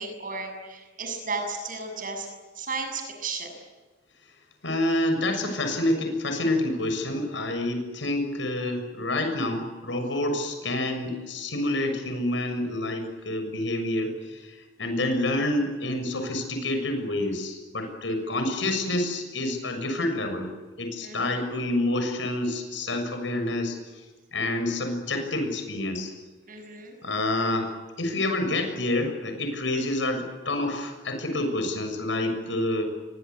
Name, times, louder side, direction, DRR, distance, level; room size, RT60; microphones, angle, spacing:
voice 1, 0.0-2.3 2.5-3.5 18.5-18.6 21.0-21.4 26.5-27.0, right 3 dB, 50° right, 5 dB, 7.1 m, -34 dB
voice 2, 4.6-20.5 20.8-24.0 24.3-26.1 27.0-27.7 28.0-32.9, left 1 dB, 85° left, 6 dB, 6.8 m, -28 dB
29.5 x 24.0 x 8.4 m, 1.3 s
head